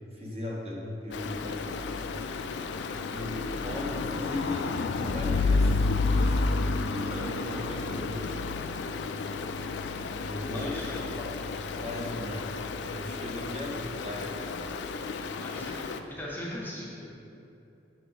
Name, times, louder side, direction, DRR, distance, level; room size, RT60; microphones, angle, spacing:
voice 1, 0.1-2.3 3.1-6.5 6.9-8.4 10.1-10.9 11.8-12.4 12.8-13.8 14.0-14.3, left 1 dB, 35° right, -3 dB, 0.9 m, -37 dB
Stream, 1.1-16.0, left 3 dB, 85° left, 0.3 m, -31 dB
voice 2, 10.5-11.0 15.4-17.1, left 1 dB, 10° left, -4 dB, 0.6 m, -40 dB
6.0 x 4.5 x 3.8 m, 2.7 s
head